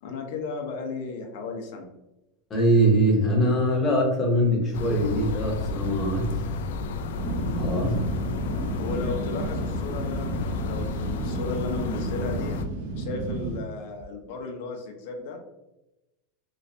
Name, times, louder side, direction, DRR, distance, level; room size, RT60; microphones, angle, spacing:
voice 1, 0.0-1.9 7.8-7.9 8.8-12.6 13.0-15.4, left 4 dB, 60° left, 3 dB, 0.7 m, -34 dB
voice 2, 2.5-6.3 7.6-8.0, right 1 dB, 15° left, -1 dB, 0.8 m, -22 dB
sound 1, 4.7-12.7, left 4 dB, 80° left, 0.3 m, -31 dB
sound 2, 7.2-13.6, right 3 dB, 55° right, 0.5 m, -32 dB
3.2 x 3.1 x 2.6 m, 0.97 s
supercardioid pair, 170°, 0 cm